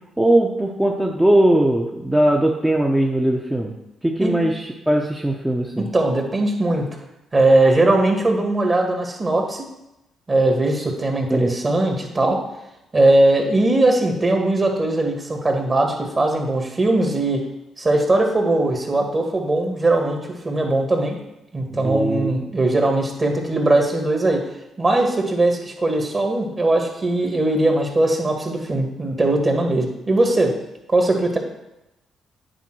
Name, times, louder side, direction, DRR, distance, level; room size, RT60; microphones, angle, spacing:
voice 1, 0.2-3.7 4.0-5.9 11.3-11.5 21.7-22.4, right 1 dB, 10° right, -1 dB, 1.0 m, -19 dB
voice 2, 5.9-6.9 7.3-9.7 10.3-12.4 12.9-17.4 17.8-21.2 21.5-24.4 24.8-30.5 30.9-31.4, right 2 dB, 35° right, 2 dB, 2.2 m, -19 dB
9.2 x 3.8 x 6.3 m, 0.92 s
supercardioid pair, 55°, 0 cm